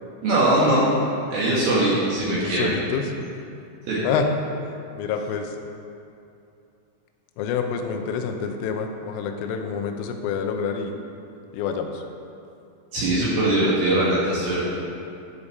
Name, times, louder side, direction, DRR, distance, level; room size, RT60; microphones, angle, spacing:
voice 1, 0.2-0.9 1.3-2.8 3.9-4.0 12.9-14.6, right 1 dB, 65° right, -8 dB, 2.6 m, -21 dB
voice 2, 2.3-3.1 4.0-4.3 5.0-5.5 7.4-11.0 11.5-12.0, left 6 dB, 85° left, 5 dB, 3.2 m, -27 dB
11.5 x 5.1 x 4.1 m, 2.6 s
omnidirectional pair, 5.8 m